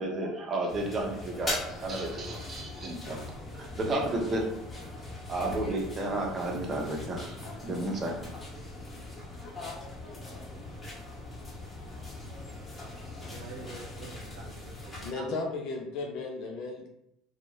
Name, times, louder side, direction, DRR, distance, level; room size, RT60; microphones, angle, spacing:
voice 1, 0.0-3.2 3.6-4.5 5.3-7.4 7.6-8.2, right 2 dB, 35° right, 0 dB, 0.9 m, -32 dB
sound 1, 0.7-15.1, left 2 dB, 25° left, 1.2 m, -40 dB
voice 2, 13.2-15.4, right 4 dB, 75° right, 0 dB, 0.6 m, -45 dB
voice 3, 15.0-16.9, left 3 dB, 65° left, 1 dB, 0.5 m, -35 dB
2.5 x 2.4 x 3.1 m, 0.79 s
hypercardioid pair, 70°, 0 cm